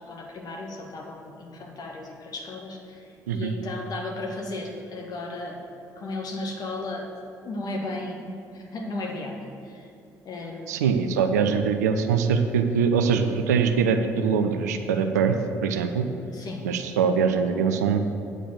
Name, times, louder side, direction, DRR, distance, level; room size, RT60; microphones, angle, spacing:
voice 1, 0.1-5.6 6.0-7.1 7.4-9.4 9.6-9.9 10.3-10.7 16.3-16.7, left 2 dB, 45° left, 0 dB, 1.7 m, -35 dB
voice 2, 10.7-15.4 15.6-16.1 16.6-18.0, right 6 dB, 80° right, 7 dB, 0.5 m, -23 dB
8.9 x 5.0 x 7.6 m, 2.5 s
figure-of-eight pair, 50°, 9 cm